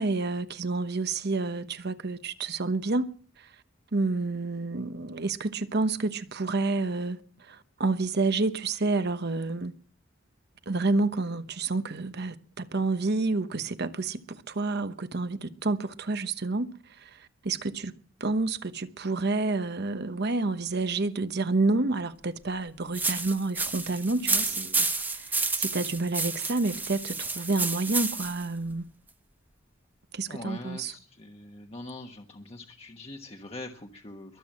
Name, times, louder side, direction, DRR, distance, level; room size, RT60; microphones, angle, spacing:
voice 1, 0.0-3.1 3.4-3.5 3.9-9.7 10.7-28.8 30.1-30.9, right 3 dB, 55° right, 1.1 m, -29 dB
sound 1, 22.9-28.4, right 3 dB, 10° right, 0.9 m, -30 dB
voice 2, 24.2-24.6 30.3-34.4, left 2 dB, 30° left, 1.3 m, -43 dB
22.5 x 8.3 x 7.4 m
head